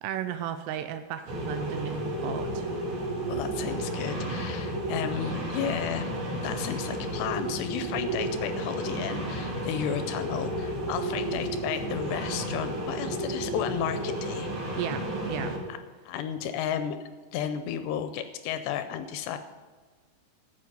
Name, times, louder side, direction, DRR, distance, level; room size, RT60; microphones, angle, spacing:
voice 1, 0.0-2.7 14.8-15.5, right 9 dB, 80° right, 9 dB, 2.5 m, -34 dB
sound 1, 1.3-15.6, right 1 dB, 50° right, 3.4 m, -32 dB
voice 2, 3.3-6.1 6.4-14.5 15.7-15.8 16.1-17.0 17.3-19.4, left 9 dB, 80° left, 9 dB, 2.5 m, -33 dB
13.0 x 7.5 x 5.3 m, 1.4 s
omnidirectional pair, 5.1 m